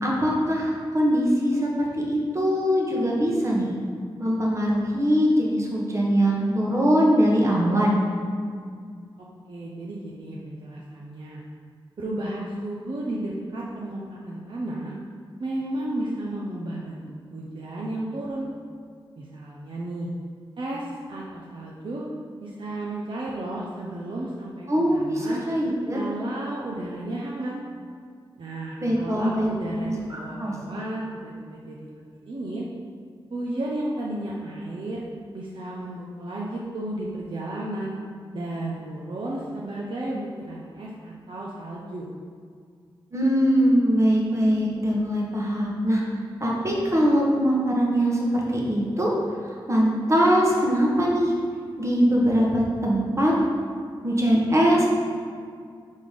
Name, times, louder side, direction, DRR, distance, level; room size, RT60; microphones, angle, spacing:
voice 1, 0.0-3.7 4.2-8.0 24.7-26.0 28.8-29.5 29.8-30.5 43.1-46.0 46.4-49.1 49.7-51.3 51.8-53.3 54.0-54.9, equal, 30° right, -3 dB, 1.2 m, -22 dB
voice 2, 9.2-11.4 12.0-14.9 15.4-17.0 17.3-18.5 19.2-20.1 20.6-22.0 22.4-25.4 25.9-27.6 28.4-32.7 33.3-35.0 35.3-38.0 38.3-42.1, right 1 dB, 60° right, -4 dB, 0.7 m, -33 dB
5.4 x 4.0 x 5.0 m, 2.1 s
wide cardioid pair, 115°, 9 cm